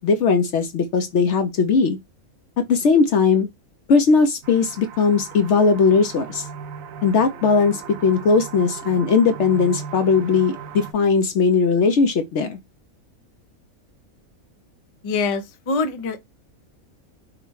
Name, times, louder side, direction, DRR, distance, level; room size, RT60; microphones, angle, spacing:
voice 1, 0.0-2.0 2.7-3.5 3.9-6.4 7.0-12.6, left 5 dB, 60° left, 0.8 m, -18 dB
sound 1, 4.4-10.9, right 7 dB, 70° right, 1.0 m, -38 dB
voice 2, 15.0-16.2, left 4 dB, 35° left, 0.5 m, -24 dB
4.8 x 2.2 x 4.6 m
omnidirectional pair, 1.5 m